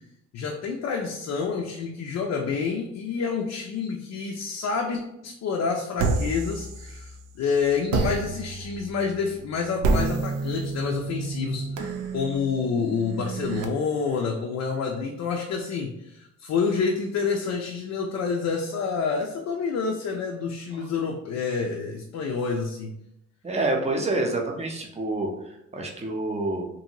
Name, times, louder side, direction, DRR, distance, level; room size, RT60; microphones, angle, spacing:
voice 1, 0.3-22.9, left 5 dB, 60° left, 1 dB, 0.5 m, -28 dB
sound 1, 6.0-7.3 7.9-13.6, right 3 dB, 85° right, 0.5 m, -29 dB
voice 2, 23.4-25.3 25.7-26.7, right 2 dB, 20° right, 1 dB, 0.6 m, -27 dB
2.6 x 2.6 x 2.8 m, 0.82 s
cardioid pair, 90°, 30 cm